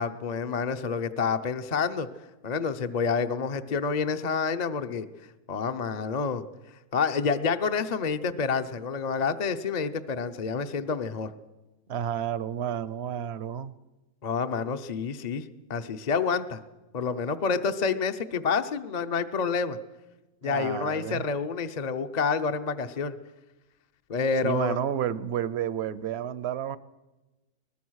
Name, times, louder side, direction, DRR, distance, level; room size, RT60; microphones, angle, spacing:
voice 1, 0.0-2.1 2.4-5.1 5.5-6.4 6.9-11.3 14.2-16.6 16.9-19.8 20.4-23.2 24.1-24.8, left 5 dB, 35° left, 8 dB, 0.7 m, -28 dB
voice 2, 11.9-13.7 20.4-21.2 24.4-26.8, right 9 dB, 50° right, 16 dB, 0.9 m, -31 dB
22.0 x 20.0 x 6.4 m, 1.1 s
omnidirectional pair, 1.7 m